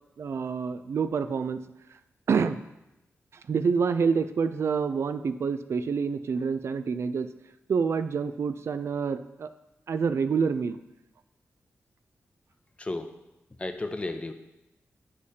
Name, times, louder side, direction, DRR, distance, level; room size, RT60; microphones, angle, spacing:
voice 1, 0.2-1.6 2.3-2.6 3.5-7.3 7.7-9.5 9.9-10.8, right 5 dB, 65° right, 11 dB, 0.4 m, -27 dB
voice 2, 12.8-13.1 13.6-14.3, left 2 dB, 25° left, 7 dB, 0.6 m, -33 dB
10.0 x 4.8 x 2.8 m, 0.93 s
wide cardioid pair, 85°, 5 cm